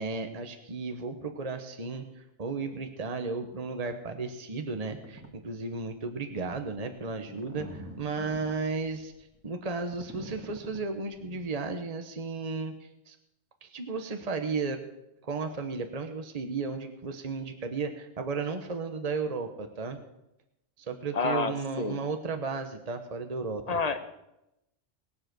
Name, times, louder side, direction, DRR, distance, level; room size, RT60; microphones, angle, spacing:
voice 1, 0.0-9.1 9.4-13.2 13.6-14.8 15.2-20.0 20.8-23.8, right 4 dB, 35° right, 6 dB, 1.2 m, -34 dB
sound 1, 4.9-5.3 5.8-6.0 6.5-11.5, right 1 dB, 10° right, 1.9 m, -46 dB
voice 2, 21.1-22.0 23.7-24.0, left 4 dB, 35° left, 9 dB, 1.1 m, -29 dB
20.0 x 7.7 x 6.1 m, 0.87 s
omnidirectional pair, 1.3 m